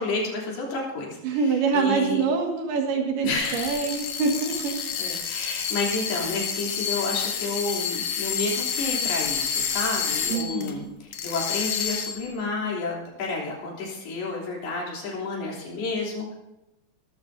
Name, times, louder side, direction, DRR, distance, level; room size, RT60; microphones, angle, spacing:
voice 1, 0.0-1.2 1.7-2.2 3.2-3.8 5.0-16.3, left 3 dB, 80° left, -3 dB, 5.2 m, -30 dB
voice 2, 1.2-4.8 10.3-10.9, right 5 dB, 85° right, 2 dB, 3.9 m, -25 dB
sound 1, 3.4-10.7 11.1-12.3, left 7 dB, 65° left, 2.6 m, -29 dB
18.5 x 14.5 x 2.7 m, 0.93 s
omnidirectional pair, 4.4 m